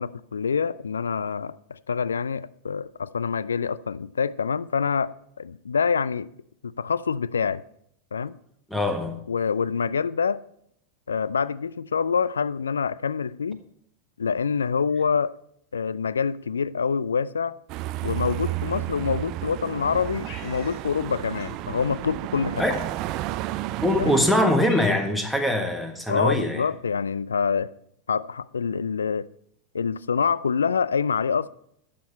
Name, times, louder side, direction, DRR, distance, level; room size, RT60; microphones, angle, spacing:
voice 1, 0.0-6.3 6.6-7.6 8.1-8.3 9.3-10.4 11.1-13.6 14.2-15.3 15.7-17.5 18.0-22.6 24.0-24.1 26.1-27.7 28.1-29.3 29.7-31.5, left 6 dB, 70° left, 0.3 m, -26 dB
voice 2, 8.7-9.2 22.6-22.7 23.8-26.7, left 1 dB, ahead, 1.4 m, -23 dB
sound 1, 17.7-24.3, right 15 dB, 40° right, 0.4 m, -32 dB
Cat, 20.2-21.0 21.3-21.6 22.6-23.2 23.9-24.0 24.3-25.3, left 3 dB, 40° left, 2.3 m, -44 dB
11.5 x 7.5 x 4.3 m
figure-of-eight pair, 90°, 0 cm